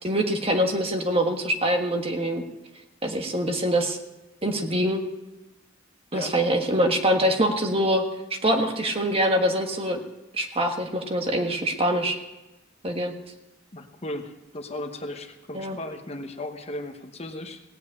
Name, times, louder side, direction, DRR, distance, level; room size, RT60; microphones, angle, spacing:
voice 1, 0.0-2.4 3.0-4.0 4.4-5.0 6.1-8.0 8.4-10.0 10.3-12.2 12.8-13.1 15.5-15.8, equal, 30° right, 4 dB, 1.5 m, -24 dB
voice 2, 13.7-17.6, left 1 dB, 30° left, 6 dB, 1.1 m, -36 dB
17.0 x 8.0 x 8.4 m, 1.0 s
head